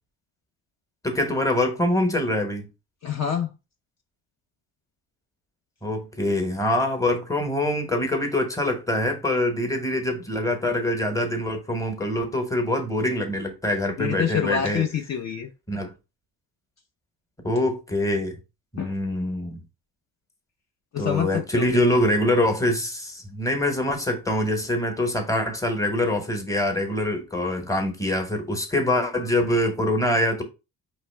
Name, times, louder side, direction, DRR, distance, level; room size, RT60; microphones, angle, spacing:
voice 1, 1.0-2.7 5.8-14.8 15.7-15.9 17.4-18.4 18.7-19.6 21.0-30.4, left 1 dB, 10° left, 1.0 m, -24 dB
voice 2, 3.0-3.5 14.0-15.5 18.8-19.0 20.9-21.8, left 8 dB, 45° left, 0.6 m, -27 dB
4.7 x 3.2 x 3.3 m
cardioid pair, 115°, 39 cm